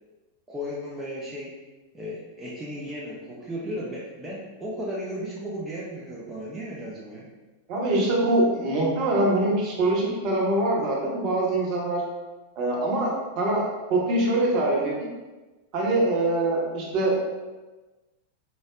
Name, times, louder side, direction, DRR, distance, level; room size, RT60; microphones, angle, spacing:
voice 1, 0.5-1.5 1.9-7.2, equal, 15° right, -5 dB, 0.5 m, -35 dB
voice 2, 7.7-12.0 12.6-13.6 13.9-15.1 15.7-17.1, right 2 dB, 40° right, -3 dB, 0.8 m, -23 dB
4.7 x 2.0 x 2.3 m, 1.2 s
figure-of-eight pair, 90°, 0 cm